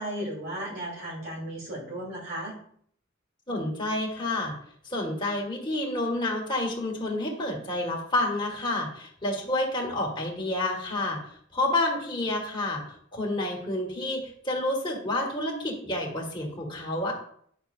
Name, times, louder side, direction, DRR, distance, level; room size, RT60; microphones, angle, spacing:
voice 1, 0.0-2.6, right 1 dB, 55° right, -4 dB, 3.4 m, -35 dB
voice 2, 3.5-4.5 4.9-11.2 11.5-12.8 13.1-17.1, left 1 dB, 25° left, -1 dB, 1.9 m, -29 dB
9.7 x 6.4 x 2.7 m, 0.63 s
head